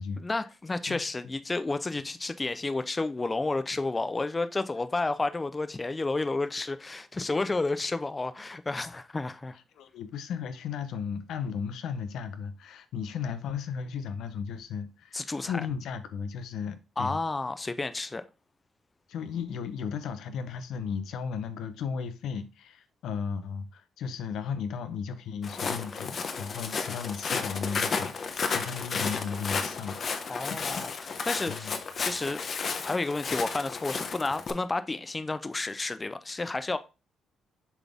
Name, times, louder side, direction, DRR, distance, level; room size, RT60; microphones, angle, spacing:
voice 1, 0.2-9.6 15.1-15.6 17.0-18.2 30.3-32.5 32.8-36.8, left 3 dB, 20° left, 0.4 m, -31 dB
voice 2, 9.8-17.2 19.1-30.9 31.5-31.8, left 6 dB, 80° left, 0.7 m, -35 dB
Walk footsteps, 25.4-34.5, left 5 dB, 50° left, 0.9 m, -33 dB
7.0 x 4.0 x 3.5 m
cardioid pair, 90°, 0 cm